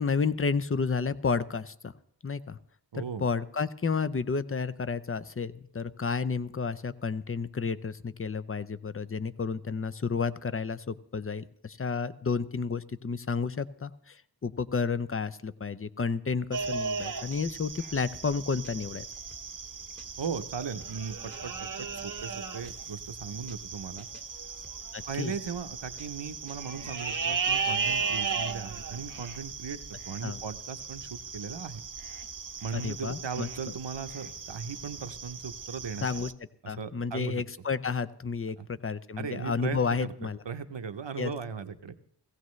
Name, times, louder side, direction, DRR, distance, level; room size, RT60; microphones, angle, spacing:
voice 1, 0.0-1.9 2.2-2.6 2.9-19.0 24.9-25.3 30.2-30.4 32.7-33.5 36.0-36.3 36.7-40.4 41.2-41.3, left 5 dB, 30° left, 15 dB, 0.6 m, -31 dB
voice 2, 2.9-3.3 20.2-24.1 25.1-31.8 32.6-36.1 36.6-37.4 38.6-38.7 39.2-40.1 40.5-42.0, right 6 dB, 90° right, 10 dB, 0.8 m, -37 dB
sound 1, 16.5-36.3, right 5 dB, 50° right, 0.7 m, -36 dB
sound 2, 17.3-17.7 18.0-20.3 20.6-23.0 23.3-23.7 24.0-25.7 26.0-27.8, right 1 dB, 5° left, 1.4 m, -56 dB
17.5 x 16.0 x 3.2 m, 0.64 s
wide cardioid pair, 45°, 42 cm